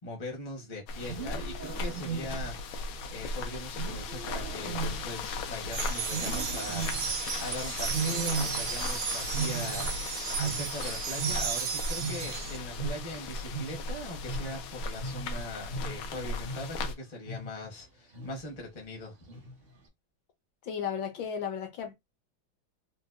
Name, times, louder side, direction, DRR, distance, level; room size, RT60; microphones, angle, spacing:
voice 1, 0.0-19.2, left 1 dB, 35° left, 0.6 m, -41 dB
sound 1, 0.9-16.9, left 3 dB, 90° left, 1.5 m, -37 dB
Wild animals, 0.9-2.7 3.7-5.6 6.1-7.3 7.9-8.9 9.2-11.7 12.0-16.9 17.2-17.7 18.1-18.6 19.3-19.7, right 4 dB, 60° right, 0.5 m, -37 dB
sound 2, 5.7-12.6, right 9 dB, 80° right, 1.4 m, -35 dB
voice 2, 20.6-21.9, left 7 dB, 70° left, 1.4 m, -34 dB
3.9 x 2.2 x 2.4 m
omnidirectional pair, 2.2 m